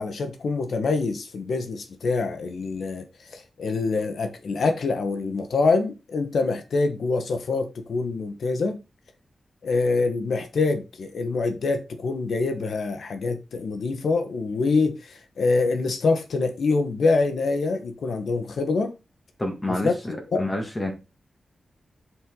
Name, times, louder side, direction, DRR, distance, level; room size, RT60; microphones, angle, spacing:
voice 1, 0.0-8.8 9.6-19.0 19.7-19.9 20.3-20.4, left 3 dB, 75° left, 1.3 m, -25 dB
voice 2, 19.4-20.9, left 1 dB, 15° left, 2.0 m, -28 dB
7.9 x 6.5 x 3.9 m
wide cardioid pair, 165°, 0 cm